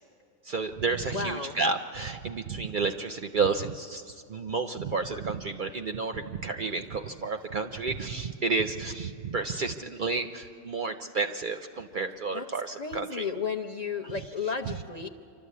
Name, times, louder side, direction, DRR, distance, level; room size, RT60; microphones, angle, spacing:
voice 1, 0.5-4.0 4.3-13.3 14.7-14.8, right 4 dB, 55° right, 7 dB, 0.6 m, -31 dB
voice 2, 1.0-1.6 12.3-15.1, left 5 dB, 40° left, 2 dB, 0.6 m, -34 dB
27.0 x 12.5 x 8.3 m, 2.4 s
omnidirectional pair, 1.3 m